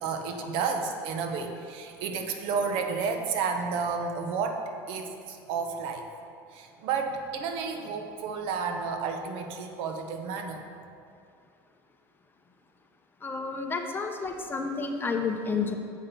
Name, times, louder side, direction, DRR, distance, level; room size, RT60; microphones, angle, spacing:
voice 1, 0.0-6.0 6.5-10.6, right 5 dB, 65° right, 5 dB, 1.0 m, -31 dB
voice 2, 13.2-15.7, left 4 dB, 20° left, 4 dB, 0.9 m, -30 dB
7.5 x 5.8 x 6.7 m, 2.4 s
supercardioid pair, 110°, 10 cm